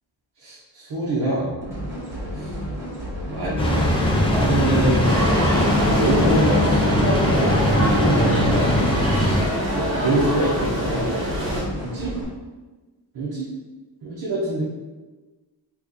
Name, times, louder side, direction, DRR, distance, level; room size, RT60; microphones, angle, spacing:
voice 1, 0.4-1.5 3.3-5.1 5.9-8.7 9.1-9.4 9.7-11.1 11.4-12.1 13.1-13.4 14.0-14.6, right 1 dB, 55° right, -7 dB, 1.0 m, -25 dB
sound 1, 1.6-12.2, equal, 5° right, 1.3 m, -32 dB
sound 2, 3.6-9.4, left 1 dB, 15° left, 0.4 m, -20 dB
sound 3, 5.0-11.6, equal, 30° right, 1.3 m, -25 dB
4.4 x 2.4 x 4.0 m, 1.2 s
wide cardioid pair, 180°, 44 cm